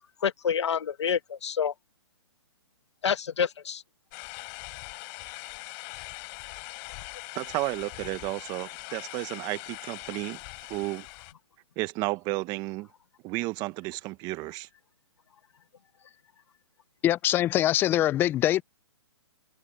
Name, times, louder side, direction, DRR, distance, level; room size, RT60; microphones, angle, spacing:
voice 1, 0.2-1.7 3.0-3.8, left 7 dB, 75° left, 1.6 m, -28 dB
sound 1, 4.1-11.3, left 35 dB, 35° left, 5.9 m, -42 dB
voice 2, 7.3-10.4 10.7-11.0 11.8-12.9 13.2-14.7, right 22 dB, 25° right, 1.2 m, -32 dB
voice 3, 17.0-18.6, left 13 dB, 15° left, 0.4 m, -23 dB
hypercardioid pair, 140°, 15 cm